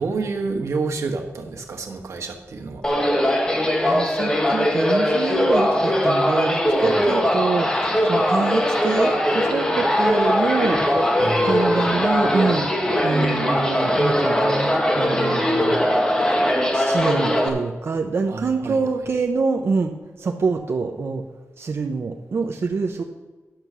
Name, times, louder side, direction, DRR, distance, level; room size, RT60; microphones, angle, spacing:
voice 1, 0.0-2.8 6.8-7.0 11.2-11.7 18.3-18.8, right 4 dB, 85° right, 2 dB, 1.3 m, -29 dB
sound 1, 2.8-17.5, equal, 15° left, 1.4 m, -20 dB
voice 2, 3.8-10.8 11.4-12.7 13.0-15.8 16.7-21.2 21.6-23.0, right 4 dB, 55° right, 3 dB, 0.7 m, -25 dB
10.5 x 6.8 x 6.1 m, 1.2 s
wide cardioid pair, 130°, 5 cm